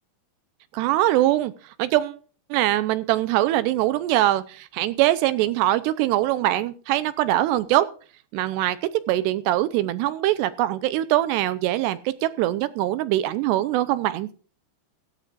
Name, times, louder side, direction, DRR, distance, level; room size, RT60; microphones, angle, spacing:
voice 1, 0.7-1.5 1.8-2.2 2.5-7.9 8.3-8.8 9.1-14.3, right 14 dB, 80° right, 15 dB, 2.6 m, -22 dB
16.0 x 14.5 x 2.5 m, 0.39 s
omnidirectional pair, 5.4 m